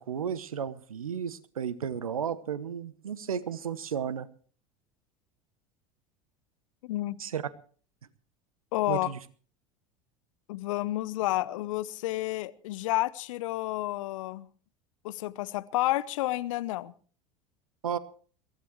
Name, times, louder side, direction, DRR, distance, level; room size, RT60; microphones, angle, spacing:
voice 1, 0.0-4.3 7.2-7.4 8.9-9.2 17.8-18.0, right 8 dB, 85° right, 1.0 m, -33 dB
voice 2, 6.8-7.2 8.7-9.1 10.5-14.5 15.0-16.9, left 16 dB, 65° left, 0.8 m, -30 dB
22.5 x 16.0 x 3.1 m
hypercardioid pair, 80°, 18 cm